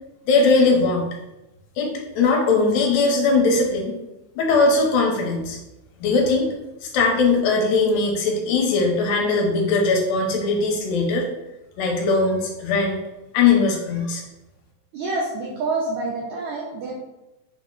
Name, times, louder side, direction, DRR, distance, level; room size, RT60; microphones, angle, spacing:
voice 1, 0.3-1.1 1.8-3.9 4.4-5.6 6.0-6.5 6.9-11.2 11.8-13.0 13.3-14.2, left 3 dB, 80° left, 0 dB, 2.3 m, -20 dB
voice 2, 14.9-16.9, right 3 dB, 90° right, -4 dB, 1.6 m, -27 dB
5.5 x 2.0 x 3.7 m, 0.97 s
omnidirectional pair, 4.1 m